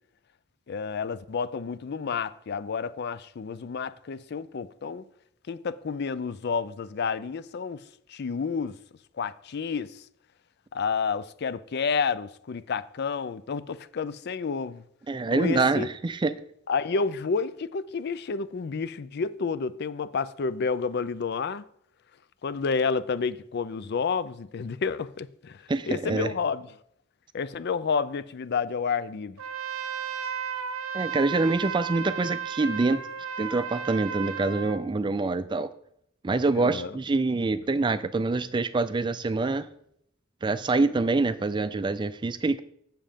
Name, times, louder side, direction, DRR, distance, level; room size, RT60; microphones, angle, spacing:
voice 1, 0.7-5.1 5.5-7.8 8.1-8.7 9.2-10.0 10.7-14.8 15.3-15.9 16.7-21.6 22.4-26.7 27.3-29.4 36.5-37.0, left 5 dB, 50° left, 0.4 m, -30 dB
voice 2, 15.1-16.3 25.7-26.3 30.9-33.1 33.4-35.7 36.2-39.7 40.4-42.6, right 3 dB, 20° right, 0.4 m, -25 dB
Trumpet, 29.4-34.8, right 7 dB, 80° right, 0.7 m, -34 dB
7.6 x 7.3 x 5.1 m
head